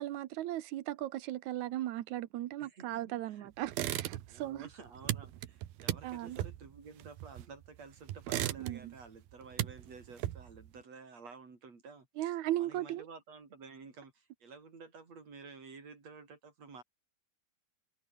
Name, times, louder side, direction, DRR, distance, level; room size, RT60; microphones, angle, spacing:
voice 1, 0.0-4.7 6.0-6.4 8.6-8.9 12.2-13.1, right 14 dB, 70° right, 2.0 m, -37 dB
sound 1, 3.7-4.5 4.7-7.7 8.1-9.0 9.3-10.7, right 14 dB, 85° right, 3.1 m, -37 dB
voice 2, 4.3-12.3 12.6-16.8, right 4 dB, 45° right, 5.9 m, -52 dB
omnidirectional pair, 4.1 m